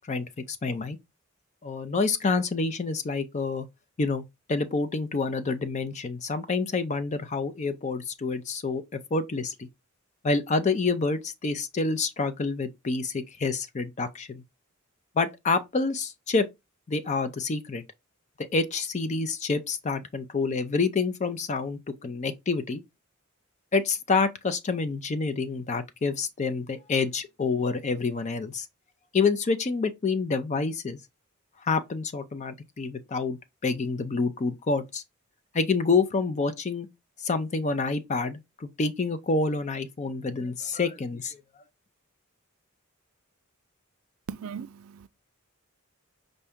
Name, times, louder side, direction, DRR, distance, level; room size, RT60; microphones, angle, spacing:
voice 1, 0.1-1.0 1.6-3.7 4.0-8.8 9.1-9.7 10.2-14.4 15.2-16.5 16.9-17.8 18.4-22.8 23.7-28.7 29.1-31.0 31.6-35.0 35.5-36.9 37.2-41.4, left 4 dB, 35° left, 0.4 m, -28 dB
voice 2, 44.3-45.1, right 7 dB, 75° right, 0.4 m, -38 dB
5.6 x 2.6 x 3.5 m
head